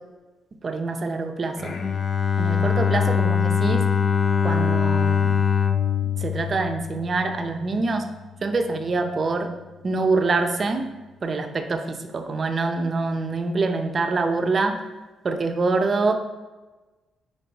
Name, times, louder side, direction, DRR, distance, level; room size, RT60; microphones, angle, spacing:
voice 1, 0.6-1.8 2.4-3.9 4.4-5.3 6.2-8.1 8.4-9.5 9.8-10.8 11.2-14.8 15.2-16.1, right 3 dB, 40° right, 6 dB, 0.6 m, -25 dB
Bowed string instrument, 1.6-7.5, left 7 dB, 45° left, 0.5 m, -22 dB
5.4 x 4.1 x 4.5 m, 1.2 s
cardioid pair, 90°, 0 cm